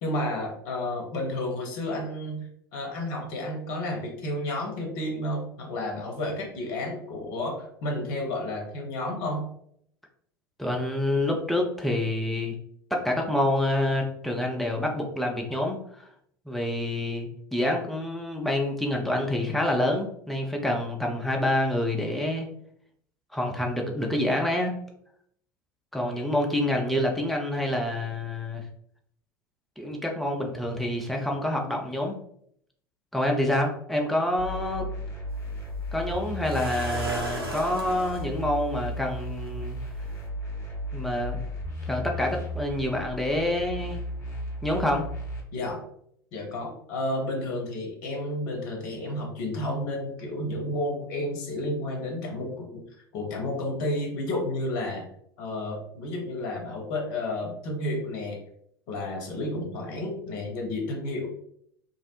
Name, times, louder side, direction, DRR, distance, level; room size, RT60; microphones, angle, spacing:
voice 1, 0.0-9.5 45.5-45.8 46.3-52.8 53.1-55.1 55.4-58.4 58.9-61.3, left 1 dB, 50° left, 1 dB, 0.7 m, -31 dB
voice 2, 10.6-12.5 12.9-16.1 16.5-22.5 23.3-24.7 25.9-28.6 29.8-32.2 33.1-34.9 35.9-39.8 40.9-41.4 41.9-44.0 44.6-45.0, left 1 dB, ahead, 0 dB, 0.5 m, -27 dB
sound 1, 34.4-45.4, left 1 dB, 25° left, 0.8 m, -35 dB
sound 2, 35.3-35.4 36.4-38.3 39.5-39.6 40.1-40.3, right 1 dB, 85° right, 0.5 m, -34 dB
2.5 x 2.0 x 2.8 m, 0.69 s
figure-of-eight pair, 75°, 12 cm